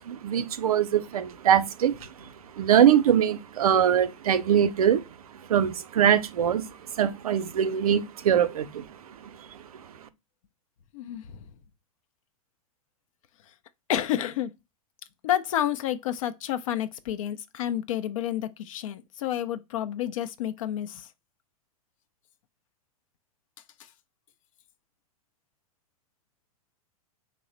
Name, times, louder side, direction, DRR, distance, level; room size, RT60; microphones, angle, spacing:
voice 1, 0.2-1.9 2.6-5.0 5.5-6.6 7.0-8.6, right 9 dB, 75° right, 0.5 m, -22 dB
voice 2, 13.9-14.5 15.2-21.1, left 11 dB, 60° left, 0.5 m, -29 dB
3.2 x 2.0 x 3.8 m
hypercardioid pair, 105°, 19 cm